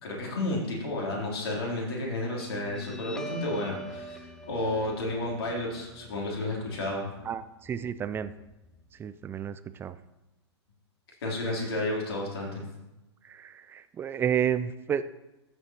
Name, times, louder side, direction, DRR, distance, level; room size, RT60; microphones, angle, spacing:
voice 1, 0.0-7.1 11.2-12.6, left 2 dB, 60° left, -2 dB, 3.5 m, -32 dB
Guitar, 2.4-9.4, right 1 dB, 5° left, 0.8 m, -45 dB
voice 2, 7.2-8.3 8.9-10.0 13.2-15.0, right 9 dB, 15° right, 13 dB, 0.4 m, -31 dB
15.0 x 7.1 x 3.0 m, 0.98 s
figure-of-eight pair, 105°, 15 cm